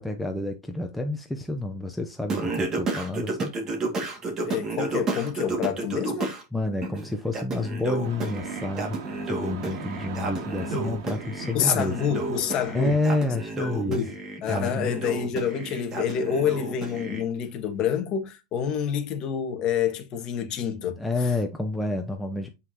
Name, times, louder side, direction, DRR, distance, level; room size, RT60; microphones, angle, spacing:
voice 1, 0.0-3.5 6.5-9.0 9.2-12.0 12.7-14.0 14.5-14.9 20.8-22.5, left 2 dB, ahead, 0.7 m, -29 dB
Singing, 2.3-6.4 6.8-17.2, right 3 dB, 20° right, 2.2 m, -32 dB
voice 2, 4.4-6.3 11.5-13.0 13.6-14.1 14.4-21.3, left 8 dB, 30° left, 1.5 m, -28 dB
Arizona Regen Leinenknarren, 8.0-13.0, right 3 dB, 60° right, 3.0 m, -38 dB
8.1 x 5.6 x 2.9 m
supercardioid pair, 155°, 2 cm